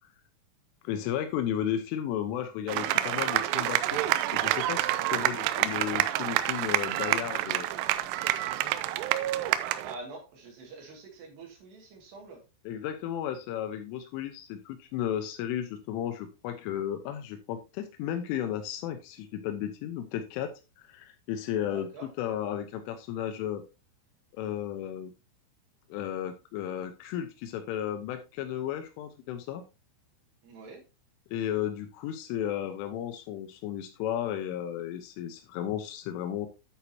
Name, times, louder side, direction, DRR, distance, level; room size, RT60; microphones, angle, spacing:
voice 1, 0.8-4.0 4.3-7.7 12.7-21.9 22.2-23.6 24.3-25.1 25.9-29.6 31.3-36.5, left 10 dB, 90° left, 6 dB, 3.4 m, -34 dB
sound 1, 2.7-10.0, right 14 dB, 85° right, 3.1 m, -28 dB
voice 2, 5.0-5.3 9.8-12.4 21.6-22.1 30.4-30.9, right 3 dB, 65° right, 1 dB, 4.1 m, -45 dB
10.0 x 8.4 x 2.8 m, 0.27 s
omnidirectional pair, 5.5 m